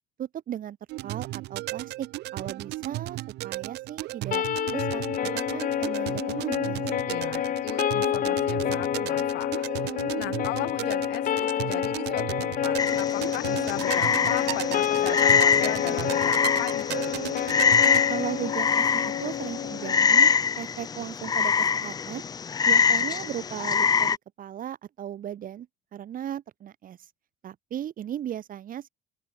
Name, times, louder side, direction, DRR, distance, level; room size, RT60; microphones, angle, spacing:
voice 1, 0.2-0.8 1.0-2.1 2.3-3.2 3.4-6.8 18.1-22.2 22.7-25.7 25.9-27.0 27.4-28.9, right 10 dB, 55° right, 2.5 m, -36 dB
sound 1, 0.9-18.0, right 18 dB, 85° right, 1.7 m, -35 dB
sound 2, 4.3-20.3, left 10 dB, 55° left, 2.2 m, -28 dB
voice 2, 7.1-17.2, left 20 dB, 90° left, 4.2 m, -37 dB
Frog, 12.8-24.2, left 6 dB, 25° left, 0.4 m, -24 dB
open air
cardioid pair, 110°, 17 cm